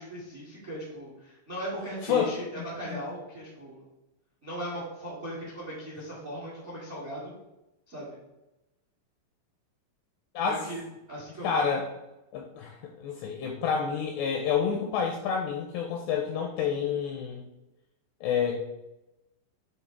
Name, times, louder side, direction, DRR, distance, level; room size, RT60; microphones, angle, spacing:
voice 1, 0.0-3.9 4.4-7.3 7.9-8.2 10.4-10.8 11.1-11.6, equal, 75° right, -5 dB, 0.6 m, -38 dB
voice 2, 2.0-3.0 10.4-10.7 11.4-11.9 12.3-17.4 18.2-18.7, left 6 dB, 85° left, 2 dB, 2.4 m, -29 dB
8.7 x 3.1 x 4.6 m, 0.95 s
omnidirectional pair, 5.6 m